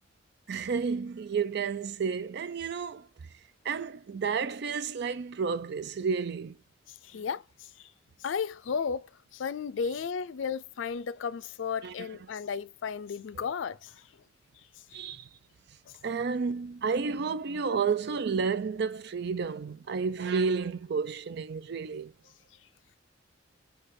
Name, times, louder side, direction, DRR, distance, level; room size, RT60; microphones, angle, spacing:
voice 1, 0.5-3.1 3.6-6.6 7.1-7.2 11.8-11.9 13.4-13.5 14.9-15.3 16.0-22.1, right 5 dB, 60° right, 0.5 m, -31 dB
voice 2, 7.0-7.4 7.8-7.9 8.2-9.1 9.3-13.9, left 6 dB, 85° left, 0.4 m, -34 dB
4.4 x 2.3 x 4.7 m
head